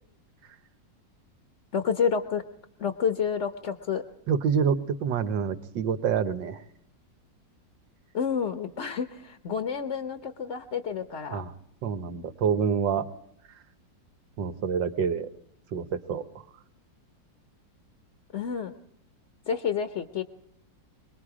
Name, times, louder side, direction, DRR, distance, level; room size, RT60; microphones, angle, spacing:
voice 1, 1.7-2.4 2.8-4.0 8.1-11.4 18.3-18.7 19.5-20.2, left 6 dB, 45° left, 7 dB, 1.2 m, -29 dB
voice 2, 4.3-6.6 11.3-11.5 11.8-13.0 14.4-15.3 15.7-16.4, right 7 dB, 75° right, 11 dB, 1.8 m, -27 dB
25.5 x 21.0 x 5.0 m, 0.75 s
omnidirectional pair, 2.0 m